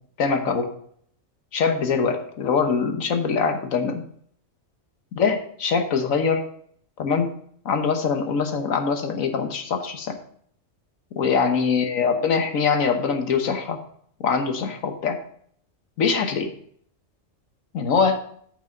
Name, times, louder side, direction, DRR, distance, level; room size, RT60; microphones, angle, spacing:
voice 1, 0.2-0.7 1.5-4.0 5.1-6.4 7.0-7.3 7.6-10.2 11.1-13.8 14.2-15.2 16.0-16.5 17.7-18.2, left 5 dB, 85° left, 6 dB, 1.5 m, -23 dB
9.4 x 5.5 x 5.1 m, 0.63 s
omnidirectional pair, 1.4 m